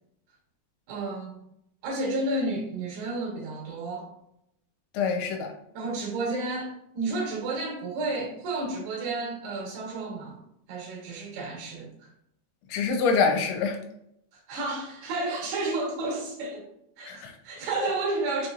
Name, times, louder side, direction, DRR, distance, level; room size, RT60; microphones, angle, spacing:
voice 1, 0.9-1.4 1.8-4.1 5.7-10.4 10.7-11.9 14.3-16.6 17.0-18.5, right 2 dB, 70° right, -2 dB, 3.1 m, -31 dB
voice 2, 4.9-5.5 12.7-13.8 17.0-17.3 17.8-17.9, left 5 dB, 85° left, 3 dB, 2.9 m, -25 dB
6.7 x 3.0 x 2.5 m, 0.76 s
omnidirectional pair, 5.3 m